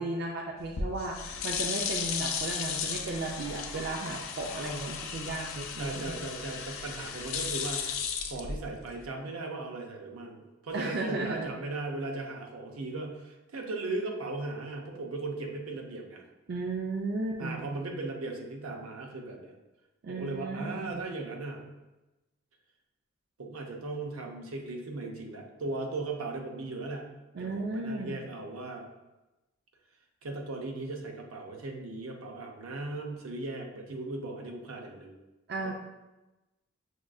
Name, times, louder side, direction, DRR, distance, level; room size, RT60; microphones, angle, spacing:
voice 1, 0.0-6.1 10.7-11.5 16.5-17.7 20.0-21.0 27.3-28.2 35.5-35.7, right 2 dB, 50° right, 1 dB, 0.3 m, -35 dB
sound 1, 0.6-9.1, left 6 dB, 70° left, 0.4 m, -35 dB
voice 2, 5.8-7.9 8.3-16.2 17.4-19.5 20.1-21.7 23.4-27.1 27.4-28.9 30.2-35.1, right 2 dB, 85° right, 2 dB, 0.6 m, -37 dB
6.0 x 2.4 x 2.3 m, 1.0 s
head